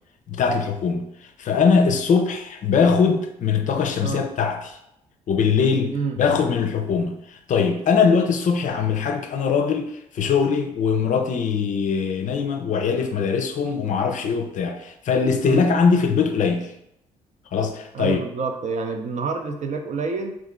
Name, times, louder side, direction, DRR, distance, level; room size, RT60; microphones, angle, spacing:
voice 1, 0.3-4.8 5.3-16.7 17.5-18.2, left 5 dB, 50° left, 0.5 m, -21 dB
voice 2, 17.9-20.4, right 4 dB, 45° right, 0.6 m, -27 dB
2.8 x 2.5 x 3.6 m
hypercardioid pair, 50°, 16 cm